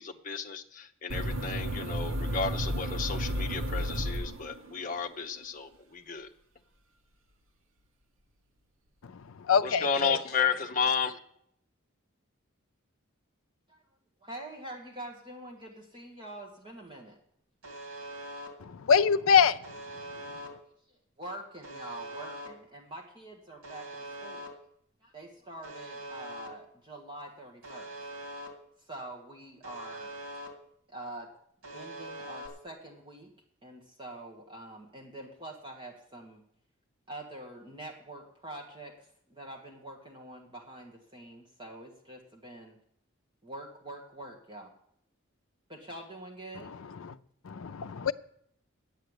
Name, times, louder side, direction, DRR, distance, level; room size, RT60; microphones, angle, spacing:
voice 1, 0.0-6.3 9.6-11.2, left 6 dB, 40° left, 5 dB, 0.8 m, -32 dB
sound 1, 1.1-4.8, equal, 70° right, 1.1 m, -32 dB
voice 2, 9.5-10.2 18.6-19.6 47.0-47.1 47.4-48.1, left 7 dB, 75° left, 11 dB, 0.5 m, -24 dB
voice 3, 14.2-17.2 20.9-24.4 25.0-27.9 28.8-30.1 30.9-31.3 31.7-33.3 33.6-36.4 37.1-42.8 43.4-44.7 45.7-46.7, right 1 dB, 20° right, 0 dB, 1.6 m, -45 dB
Alarm, 17.6-18.5 19.6-20.5 21.6-22.5 23.6-24.5 25.6-26.5 27.6-28.5 29.6-30.5 31.6-32.5, right 1 dB, 90° right, 2.5 m, -42 dB
10.5 x 8.7 x 8.0 m, 0.71 s
head